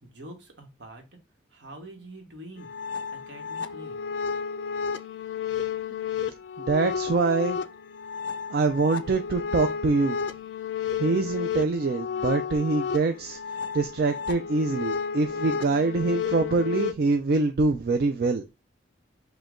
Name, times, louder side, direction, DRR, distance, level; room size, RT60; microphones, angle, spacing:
voice 1, 0.0-1.0 1.5-2.7 3.3-4.0, right 1 dB, 70° right, 1.2 m, -45 dB
sound 1, 2.6-16.9, left 6 dB, 70° left, 0.4 m, -32 dB
voice 2, 6.6-7.6 8.5-10.2 11.0-13.4 13.7-18.4, right 3 dB, 55° right, 0.3 m, -24 dB
5.1 x 2.2 x 3.6 m
head